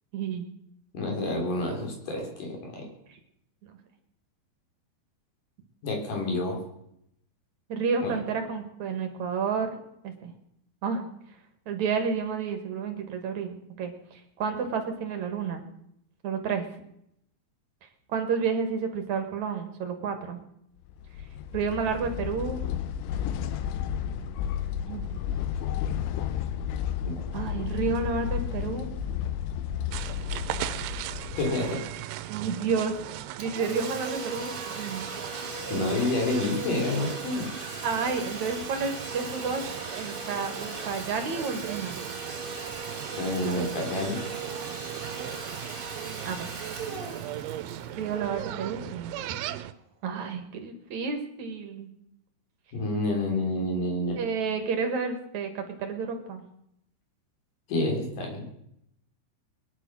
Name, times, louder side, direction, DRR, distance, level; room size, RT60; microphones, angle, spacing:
voice 1, 0.1-0.5 3.1-3.2 3.6-3.7 7.7-10.3 10.8-11.1 11.7-15.6 16.2-16.7 18.1-20.4 21.5-22.6 24.9-25.0 27.3-28.9 32.3-32.9 33.4-35.1 37.8-39.6 39.9-41.9 46.2-46.5 47.9-49.1 50.0-51.9 54.2-56.4, right 5 dB, 55° right, 6 dB, 2.3 m, -30 dB
voice 2, 0.9-2.8 5.8-6.6 8.0-8.1 27.0-27.2 31.4-31.8 35.7-37.5 43.1-44.4 52.7-54.2 57.7-58.4, left 2 dB, 50° left, 1 dB, 5.1 m, -29 dB
sound 1, 20.9-31.9, left 9 dB, 90° left, 3.3 m, -32 dB
sound 2, 29.9-49.7, right 13 dB, 90° right, 3.1 m, -39 dB
Domestic sounds home sounds, 33.4-48.9, right 4 dB, 35° right, 0.8 m, -38 dB
21.5 x 10.5 x 6.3 m, 0.76 s
omnidirectional pair, 5.2 m